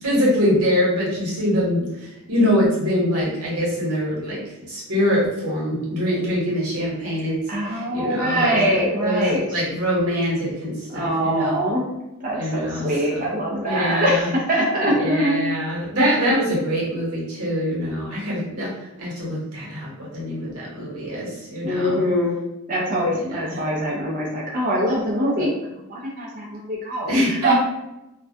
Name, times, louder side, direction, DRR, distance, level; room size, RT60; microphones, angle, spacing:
voice 1, 0.0-7.4 7.6-8.7 9.0-11.6 12.3-13.2 13.6-14.3 14.8-18.7 19.0-22.0 23.1-23.6 27.0-27.5, equal, 85° right, -5 dB, 1.0 m, -24 dB
voice 2, 7.5-9.4 10.9-11.9 12.2-15.4 16.0-16.4 21.6-22.3 22.7-27.5, equal, 40° right, -5 dB, 0.5 m, -23 dB
2.2 x 2.1 x 2.6 m, 0.93 s
head